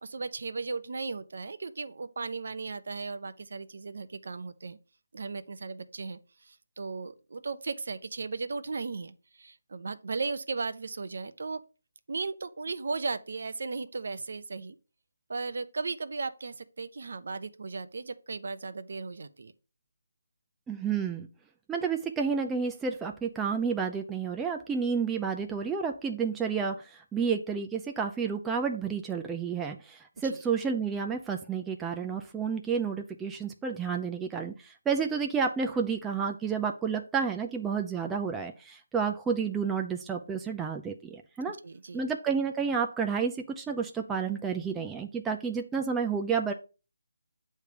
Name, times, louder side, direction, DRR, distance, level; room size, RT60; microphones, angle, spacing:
voice 1, 0.0-4.8 5.1-6.2 6.5-11.6 12.1-14.8 15.3-19.5 30.2-30.4 41.6-42.1, right 4 dB, 60° right, 0.7 m, -36 dB
voice 2, 20.7-21.3 21.7-41.6 41.9-46.5, right 6 dB, 10° right, 0.5 m, -30 dB
8.3 x 3.3 x 5.1 m
figure-of-eight pair, 165°, 0 cm